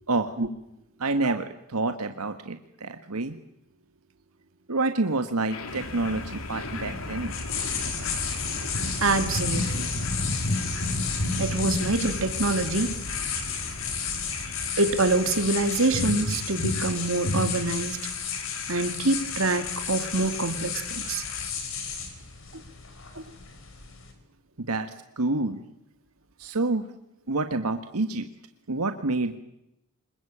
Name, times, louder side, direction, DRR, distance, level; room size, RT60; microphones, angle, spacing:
voice 1, 1.0-3.4 4.7-7.4 24.6-24.9 25.2-25.6 26.4-26.8 27.3-28.2 28.7-29.4, right 2 dB, 90° right, 8 dB, 1.6 m, -28 dB
sound 1, 5.5-21.5, left 2 dB, 75° left, 2.9 m, -37 dB
sound 2, 5.7-24.1, left 4 dB, 60° left, 4.8 m, -32 dB
voice 2, 9.0-9.9 11.4-12.9 14.8-18.0 18.7-21.2 22.5-22.6 23.2-23.3, right 3 dB, 65° right, 9 dB, 2.2 m, -25 dB
26.0 x 22.0 x 8.7 m, 0.85 s
head